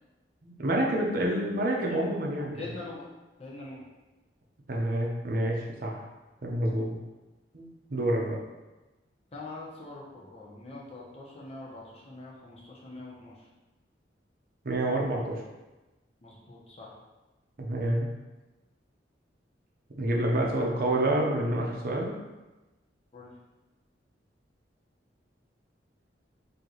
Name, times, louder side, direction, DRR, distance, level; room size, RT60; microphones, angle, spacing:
voice 1, 0.4-2.6 4.7-6.1 6.4-6.9 7.5-8.4 14.6-15.4 17.6-18.1 20.0-22.2, right 1 dB, 55° right, -1 dB, 0.7 m, -28 dB
voice 2, 2.5-3.1 3.4-3.8 9.3-13.5 16.2-16.9 23.1-23.3, left 2 dB, 35° left, -4 dB, 0.9 m, -43 dB
3.1 x 2.8 x 3.9 m, 1.1 s
head